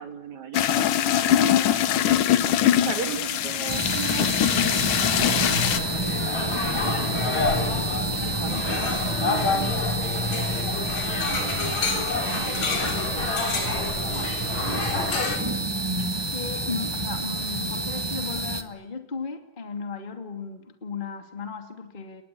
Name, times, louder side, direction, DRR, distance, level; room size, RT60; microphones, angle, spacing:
voice 1, 0.0-1.7 2.7-6.1 6.8-7.8 8.1-15.7, right 7 dB, 60° right, 7 dB, 4.0 m, -39 dB
sound 1, 0.5-5.8, left 11 dB, 75° left, 2.8 m, -22 dB
voice 2, 1.2-1.6 8.4-8.7 14.1-14.3 16.2-22.2, left 4 dB, 15° left, 6 dB, 2.4 m, -35 dB
sound 2, 3.7-18.6, right 1 dB, 15° right, 1.0 m, -28 dB
sound 3, 4.9-15.4, left 4 dB, 60° left, 5.1 m, -29 dB
29.5 x 22.0 x 8.6 m, 0.82 s
omnidirectional pair, 3.7 m